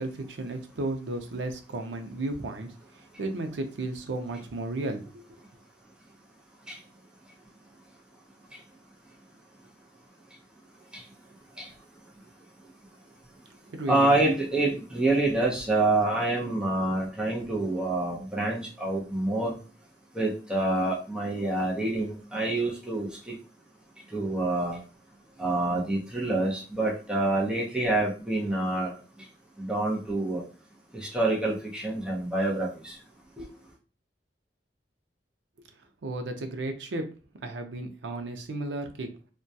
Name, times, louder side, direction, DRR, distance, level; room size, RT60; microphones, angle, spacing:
voice 1, 0.0-5.3 13.7-14.3 36.0-37.1 37.4-39.1, right 2 dB, 90° right, 6 dB, 0.5 m, -34 dB
voice 2, 13.9-19.5 20.2-23.1 24.1-24.8 25.4-28.9 29.6-30.4 31.0-32.9 33.4-33.5, right 2 dB, 5° right, -3 dB, 0.6 m, -27 dB
2.2 x 2.2 x 2.6 m, 0.36 s
head